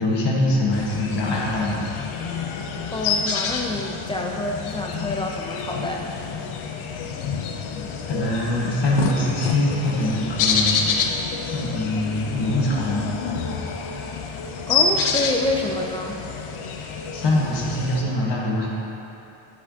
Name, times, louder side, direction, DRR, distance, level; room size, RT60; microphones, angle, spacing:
voice 1, 0.0-1.9 8.1-10.8 11.5-13.0 17.1-18.7, left 1 dB, 55° left, -3 dB, 1.3 m, -23 dB
sound 1, 0.7-18.0, left 5 dB, 80° left, 0.7 m, -28 dB
voice 2, 2.9-6.1 14.7-16.2, left 2 dB, 10° left, 0 dB, 0.3 m, -27 dB
7.5 x 7.5 x 2.7 m, 2.9 s
wide cardioid pair, 160°, 49 cm